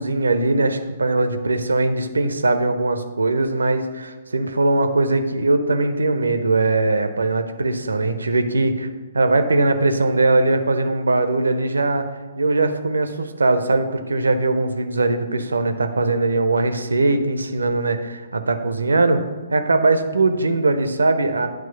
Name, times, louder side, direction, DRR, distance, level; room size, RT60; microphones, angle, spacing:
voice 1, 0.0-8.9 9.1-12.1 12.4-19.2 19.5-21.5, right 2 dB, 70° right, 8 dB, 0.6 m, -20 dB
9.1 x 3.1 x 6.6 m, 1.3 s
figure-of-eight pair, 125°, 0 cm